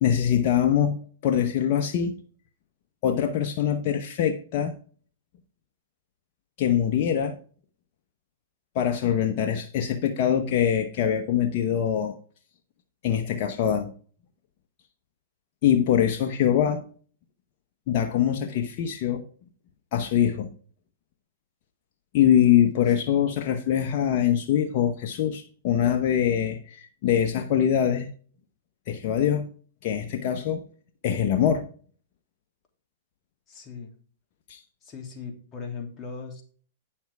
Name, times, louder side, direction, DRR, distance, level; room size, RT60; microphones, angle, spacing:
voice 1, 0.0-2.2 3.0-4.8 6.6-7.4 8.7-12.1 13.0-13.9 15.6-16.8 17.9-19.2 19.9-20.5 22.1-28.1 28.9-29.5 29.8-30.6 31.0-31.7 34.5-34.6, left 9 dB, 50° left, 1.0 m, -23 dB
voice 2, 33.5-33.9 34.8-36.4, left 5 dB, 25° left, 2.7 m, -38 dB
9.3 x 7.1 x 3.5 m
hypercardioid pair, 125°, 0 cm